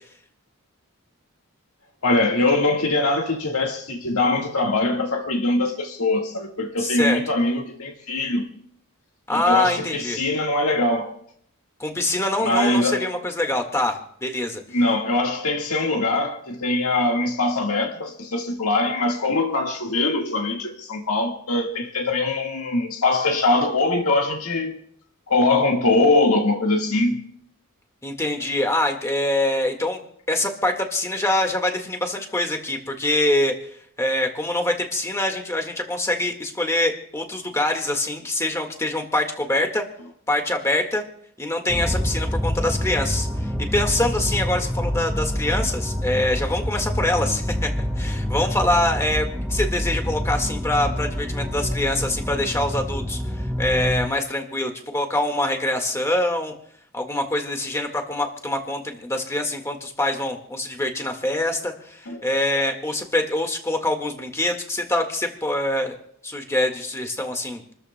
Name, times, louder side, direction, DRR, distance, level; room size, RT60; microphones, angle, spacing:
voice 1, 2.0-8.5 9.3-11.1 12.4-13.1 14.7-24.8 25.3-27.2 62.1-62.3, left 2 dB, 75° left, 1.7 m, -22 dB
voice 2, 6.8-7.2 9.3-10.2 11.8-14.6 28.0-30.0 30.3-33.5 34.0-39.8 40.3-41.0 41.4-56.5 56.9-66.0 66.2-67.7, left 1 dB, 15° left, 1.7 m, -24 dB
sound 1, 41.7-54.1, equal, 5° right, 0.7 m, -26 dB
28.5 x 13.5 x 2.2 m
head